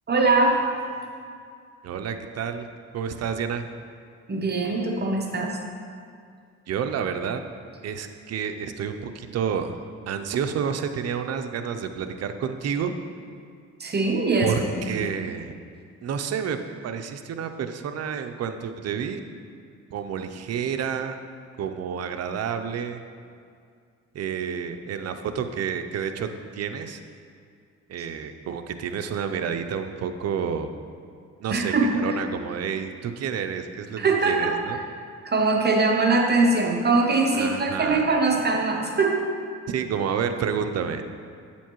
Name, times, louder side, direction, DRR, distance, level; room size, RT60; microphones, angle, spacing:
voice 1, 0.1-0.6 4.3-5.6 13.8-15.0 31.5-32.2 34.0-34.5 35.2-39.3, right 3 dB, 35° right, 1 dB, 0.8 m, -22 dB
voice 2, 1.8-2.7 2.9-3.7 6.7-7.4 7.8-9.8 10.1-12.9 14.4-15.5 16.0-16.6 16.8-19.2 19.9-21.2 21.6-23.0 24.1-26.3 26.5-27.0 27.9-30.7 31.4-34.8 37.3-38.0 39.7-41.0, right 7 dB, 55° right, 8 dB, 0.6 m, -29 dB
8.8 x 7.1 x 3.0 m, 2.2 s
cardioid pair, 90°, 30 cm